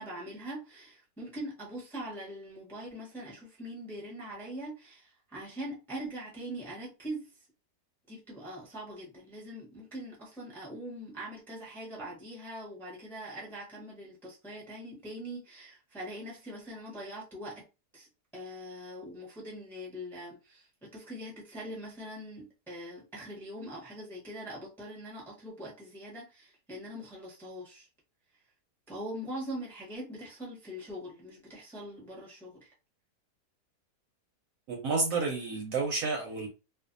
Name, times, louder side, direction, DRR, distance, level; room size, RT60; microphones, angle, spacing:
voice 1, 0.0-7.3 8.1-17.7 17.9-27.9 28.9-32.7, right 1 dB, ahead, 0.7 m, -42 dB
voice 2, 34.7-36.5, right 4 dB, 65° right, 0.9 m, -30 dB
2.5 x 2.3 x 2.5 m
omnidirectional pair, 1.7 m